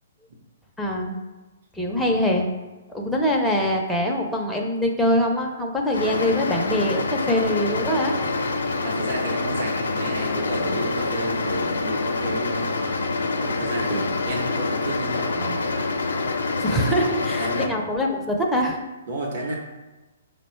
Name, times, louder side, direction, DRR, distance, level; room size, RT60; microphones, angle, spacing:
voice 1, 0.8-1.2 1.7-2.5 2.9-8.2 13.9-14.0 16.6-18.8, equal, 5° left, -1 dB, 0.5 m, -23 dB
sound 1, 5.9-17.7, left 3 dB, 85° left, 0.5 m, -26 dB
voice 2, 8.8-12.8 13.4-15.7 17.4-17.8 19.1-19.5, right 1 dB, 55° right, -2 dB, 0.8 m, -31 dB
4.8 x 2.1 x 4.3 m, 1.1 s
hypercardioid pair, 145°, 0 cm